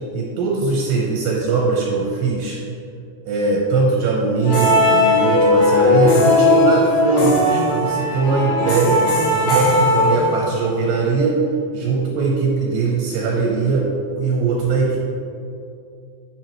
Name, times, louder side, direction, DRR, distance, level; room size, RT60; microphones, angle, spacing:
voice 1, 0.1-2.6 3.3-11.4 11.7-15.0, right 4 dB, 75° right, -2 dB, 2.7 m, -20 dB
sound 1, 4.4-10.7, left 2 dB, 90° left, 4.3 m, -17 dB
10.5 x 7.0 x 3.1 m, 2.6 s
omnidirectional pair, 5.3 m